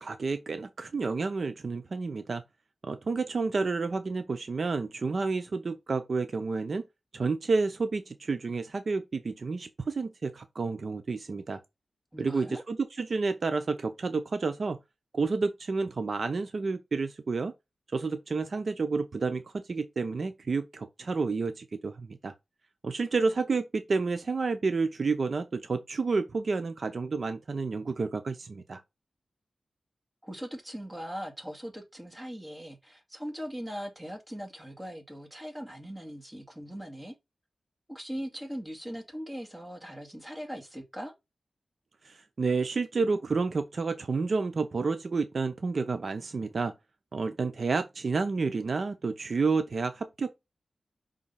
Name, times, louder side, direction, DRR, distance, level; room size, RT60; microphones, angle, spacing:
voice 1, 0.0-2.4 2.8-6.8 7.1-11.6 12.2-14.8 15.1-17.5 17.9-22.3 22.8-28.8 42.0-46.7 47.1-50.3, right 4 dB, 60° right, 0.7 m, -30 dB
voice 2, 12.1-12.6 30.2-37.1 37.9-41.1, equal, 10° right, 2.2 m, -40 dB
5.4 x 3.8 x 5.6 m
wide cardioid pair, 70°, 0 cm